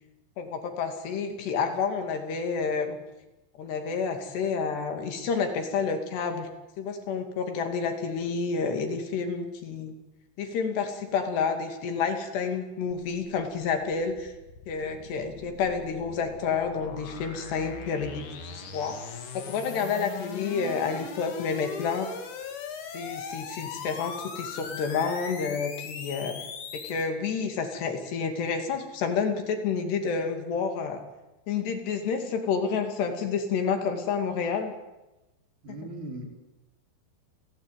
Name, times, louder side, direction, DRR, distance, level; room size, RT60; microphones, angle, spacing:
voice 1, 0.4-3.0 3.6-6.5 6.8-9.9 10.4-14.3 14.7-18.2 18.5-22.1 22.9-26.4 26.7-31.0 31.5-34.7 35.8-35.9, left 5 dB, 65° left, 6 dB, 4.5 m, -29 dB
sound 1, 12.9-27.1, left 6 dB, 50° left, 3.1 m, -40 dB
voice 2, 35.6-36.2, right 1 dB, 50° right, 0 dB, 5.8 m, -38 dB
29.5 x 16.5 x 9.2 m, 1.0 s
omnidirectional pair, 5.4 m